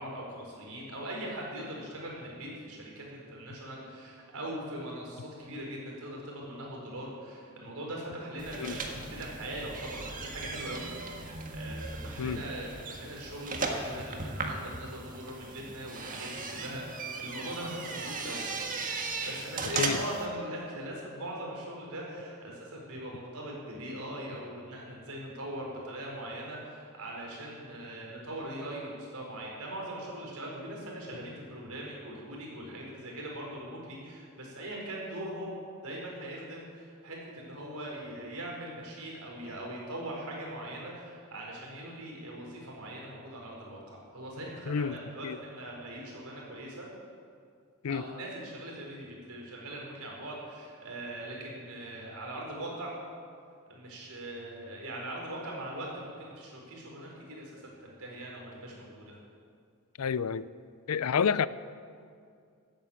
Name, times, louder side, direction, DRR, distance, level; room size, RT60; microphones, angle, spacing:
voice 1, 0.0-11.2 11.5-18.5 19.2-46.9 47.9-52.9 53.7-59.2, right 1 dB, 80° right, -2 dB, 4.5 m, -41 dB
sound 1, 8.4-20.3, right 3 dB, 40° right, 1.6 m, -37 dB
voice 2, 44.7-45.0 45.2-45.4 47.8-48.0 60.0-60.5 60.9-61.5, left 6 dB, 80° left, 17 dB, 0.5 m, -29 dB
14.5 x 9.3 x 8.7 m, 2.3 s
head